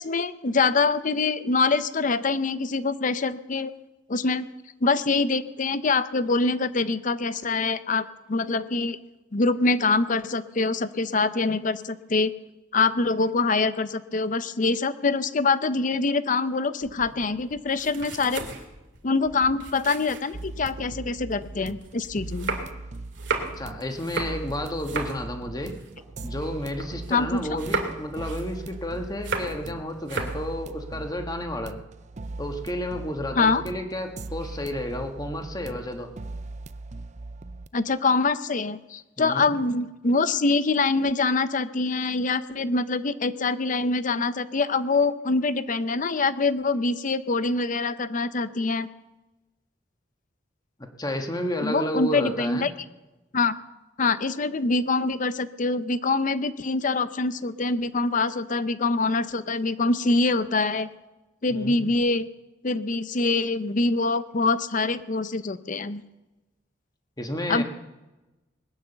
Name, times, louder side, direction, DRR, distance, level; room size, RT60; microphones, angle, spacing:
voice 1, 0.0-3.7 4.1-4.5 4.8-9.0 9.3-12.3 12.7-18.4 19.0-22.6 27.1-27.6 33.4-33.6 37.7-48.9 51.6-52.7 53.3-53.5 54.0-60.9 61.4-62.3 62.6-66.0 67.5-67.6, left 3 dB, 45° left, 14 dB, 0.7 m, -24 dB
sound 1, 16.8-20.9 21.3-27.1 27.4-29.7 30.0-30.5, right 4 dB, 70° right, 2.5 m, -34 dB
sound 2, 20.3-37.7, right 2 dB, 40° right, 0.5 m, -39 dB
voice 2, 23.6-25.8 26.2-31.8 32.4-36.1 39.2-39.5 50.8-52.7 61.5-61.8 67.2-67.6, left 1 dB, 20° left, 5 dB, 1.6 m, -31 dB
20.5 x 9.4 x 6.8 m, 1.0 s
head